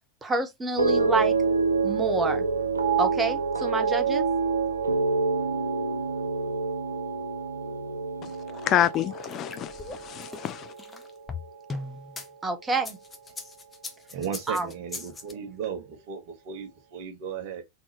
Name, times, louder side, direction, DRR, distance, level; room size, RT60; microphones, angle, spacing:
voice 1, 0.2-1.3 1.8-2.4 3.0-4.2 12.4-13.0 14.5-14.7, right 3 dB, 15° right, 1.0 m, -28 dB
sound 1, 0.8-11.1 11.4-12.0, right 4 dB, 80° right, 0.8 m, -27 dB
voice 2, 8.2-10.7, left 11 dB, 35° left, 0.3 m, -28 dB
sound 2, 8.9-12.3 12.7-15.3, left 3 dB, 15° left, 0.9 m, -39 dB
voice 3, 14.1-17.6, right 7 dB, 45° right, 1.2 m, -35 dB
3.9 x 3.7 x 2.9 m
figure-of-eight pair, 90°, 0 cm